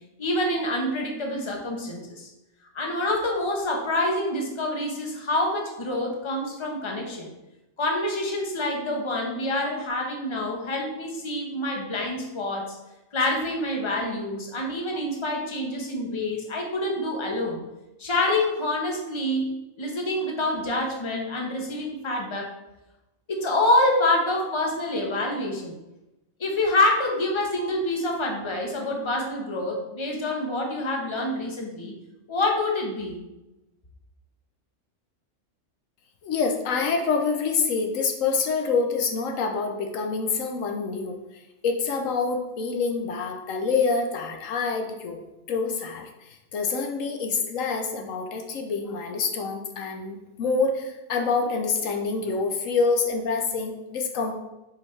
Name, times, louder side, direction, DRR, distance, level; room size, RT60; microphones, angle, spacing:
voice 1, 0.2-2.3 2.7-7.3 7.8-12.7 13.1-17.6 18.0-22.5 23.3-25.7 26.4-31.9 32.3-33.2, left 1 dB, 25° left, 1 dB, 1.0 m, -26 dB
voice 2, 36.2-41.2 41.6-45.2 45.5-54.3, left 4 dB, 80° left, 4 dB, 1.1 m, -26 dB
7.6 x 4.9 x 3.3 m, 0.96 s
omnidirectional pair, 1.4 m